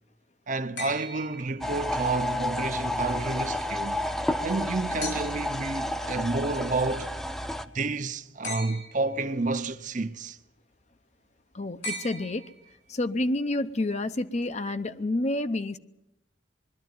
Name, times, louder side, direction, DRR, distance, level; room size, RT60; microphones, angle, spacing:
voice 1, 0.5-4.0 4.4-7.1 7.7-10.4, right 3 dB, 45° right, 0.8 m, -30 dB
sound 1, 0.8-2.1 5.0-5.6 8.4-9.2 11.8-12.9 14.5-14.6, left 1 dB, 65° left, 2.9 m, -39 dB
sound 2, 1.6-7.7, left 1 dB, ahead, 0.7 m, -31 dB
voice 2, 11.5-12.5 12.9-15.8, left 2 dB, 40° left, 0.7 m, -29 dB
21.5 x 13.0 x 9.4 m
head